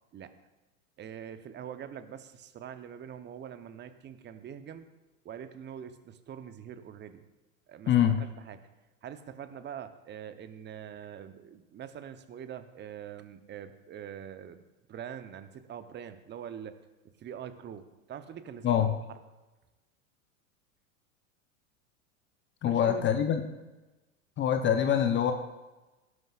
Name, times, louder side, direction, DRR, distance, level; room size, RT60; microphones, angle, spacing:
voice 1, 1.0-4.9 5.2-7.2 7.7-8.6 9.0-14.6 14.9-16.8 17.2-18.9 22.6-23.1, right 9 dB, 25° right, 10 dB, 0.9 m, -44 dB
voice 2, 7.9-8.2 18.6-18.9 22.6-23.4 24.4-25.3, left 9 dB, 25° left, 7 dB, 0.8 m, -24 dB
17.0 x 9.5 x 2.5 m, 1.1 s
hypercardioid pair, 95°, 42 cm